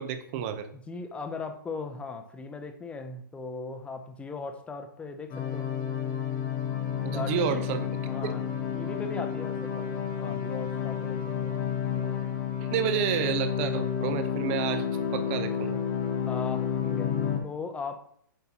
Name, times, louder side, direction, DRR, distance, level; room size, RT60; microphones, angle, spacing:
voice 1, 0.0-0.7 7.0-7.9 8.2-8.3 12.6-14.8 15.1-15.8, right 9 dB, 40° right, 9 dB, 0.7 m, -30 dB
voice 2, 0.7-5.7 7.1-7.7 8.1-8.5 8.7-11.6 16.3-18.0, left 4 dB, 10° left, 7 dB, 0.6 m, -38 dB
sound 1, 5.3-17.4, left 8 dB, 30° left, 1.1 m, -30 dB
7.9 x 4.4 x 2.8 m, 0.64 s
hypercardioid pair, 120°, 11 cm